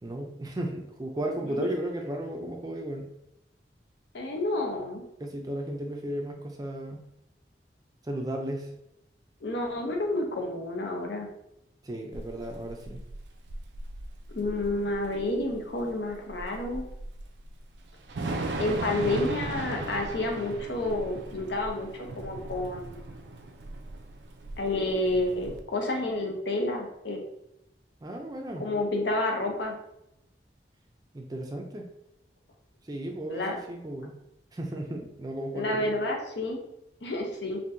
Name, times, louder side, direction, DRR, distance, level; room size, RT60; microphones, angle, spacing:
voice 1, 0.0-3.1 5.2-7.0 8.0-8.7 11.8-13.0 28.0-28.7 31.1-31.9 32.8-34.1 34.5-35.9, right 1 dB, 20° right, 2 dB, 0.4 m, -34 dB
voice 2, 4.1-5.0 9.4-11.3 14.3-16.8 18.6-21.9 22.2-23.1 24.6-27.2 28.6-29.8 33.3-33.6 35.5-36.6 37.0-37.6, left 2 dB, 75° left, 1 dB, 0.8 m, -30 dB
Thunder / Rain, 12.1-25.6, right 2 dB, 80° right, 0.4 m, -38 dB
4.4 x 2.7 x 2.6 m, 0.83 s
head